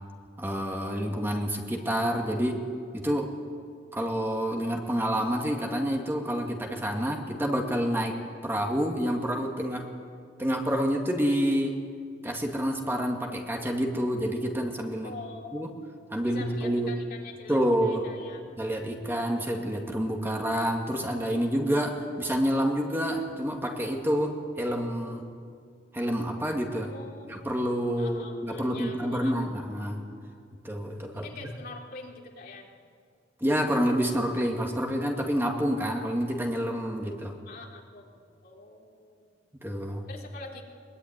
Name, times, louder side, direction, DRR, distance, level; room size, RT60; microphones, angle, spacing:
voice 1, 0.4-2.7 2.9-3.3 3.9-9.9 10.4-11.8 12.2-15.1 15.5-15.7 16.1-17.0 17.5-18.1 18.6-25.3 25.9-26.9 27.3-30.0 30.6-31.3 33.4-37.4 39.6-40.1, equal, 15° right, 1 dB, 2.3 m, -28 dB
voice 2, 15.0-15.8 16.2-18.4 26.8-27.5 28.0-29.7 31.1-32.7 37.4-38.1 38.4-39.3 40.1-40.6, left 3 dB, 55° left, 0 dB, 3.4 m, -45 dB
22.5 x 22.5 x 9.6 m, 2.2 s
head